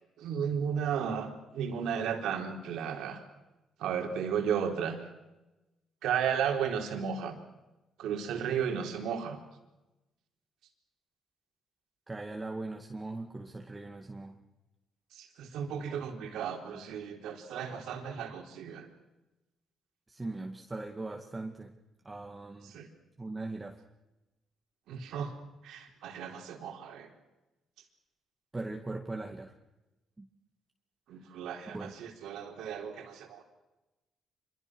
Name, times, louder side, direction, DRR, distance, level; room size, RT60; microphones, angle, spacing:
voice 1, 0.2-3.2 3.8-5.0 6.0-7.4 8.0-9.4 15.1-18.9 22.6-22.9 24.9-25.3 25.6-27.1 31.1-33.4, right 7 dB, 85° right, 4 dB, 4.1 m, -34 dB
voice 2, 12.1-14.4 16.2-16.4 20.1-21.7 22.0-22.8 23.2-23.8 28.5-29.5 30.2-30.3 31.7-31.9, right 2 dB, 20° right, 3 dB, 2.2 m, -40 dB
26.5 x 23.5 x 6.4 m, 1.0 s
cardioid pair, 90°, 0 cm